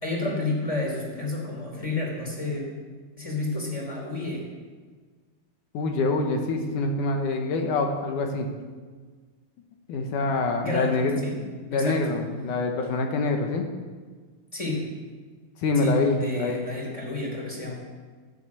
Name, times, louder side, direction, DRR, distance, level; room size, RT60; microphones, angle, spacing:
voice 1, 0.0-2.7 3.2-4.5 10.6-11.4 11.7-12.1 14.5-14.9 15.8-17.7, left 2 dB, 10° left, -2 dB, 2.4 m, -30 dB
voice 2, 5.7-8.5 9.9-13.7 15.6-16.6, left 3 dB, 65° left, 3 dB, 2.3 m, -25 dB
13.5 x 7.1 x 8.4 m, 1.5 s
omnidirectional pair, 4.4 m